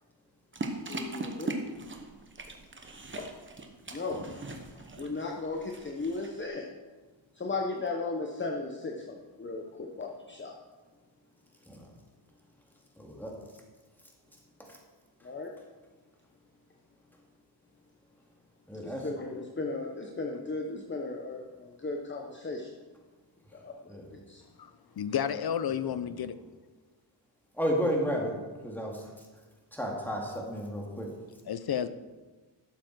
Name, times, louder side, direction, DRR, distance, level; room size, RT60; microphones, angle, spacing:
sound 1, 0.5-6.4, right 2 dB, 25° right, 1.1 m, -40 dB
voice 1, 0.9-1.5 3.2-3.3 3.9-4.4 5.0-6.7 7.4-10.6 15.2-15.5 18.7-22.7 23.5-24.4, left 3 dB, 25° left, 1 dB, 0.9 m, -36 dB
voice 2, 13.0-13.3 18.7-19.1 23.9-24.0 27.6-28.3 28.6-29.0 29.7-31.1, equal, 5° left, -1 dB, 2.1 m, -31 dB
voice 3, 25.0-26.4 31.5-31.9, left 9 dB, 55° left, 13 dB, 0.6 m, -31 dB
12.0 x 7.1 x 4.6 m, 1.3 s
wide cardioid pair, 115°, 45 cm